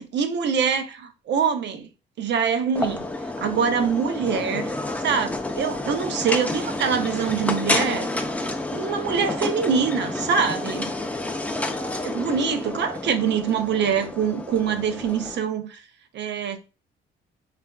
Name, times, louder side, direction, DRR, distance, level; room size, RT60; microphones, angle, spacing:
voice 1, 0.1-1.9 2.2-3.1 3.4-4.7 5.0-8.1 8.7-10.9 12.0-15.8 16.1-16.6, right 6 dB, 60° right, 0.6 m, -24 dB
sound 1, 2.8-15.4, left 2 dB, 5° left, 0.4 m, -29 dB
3.3 x 2.4 x 2.2 m
cardioid pair, 90°, 20 cm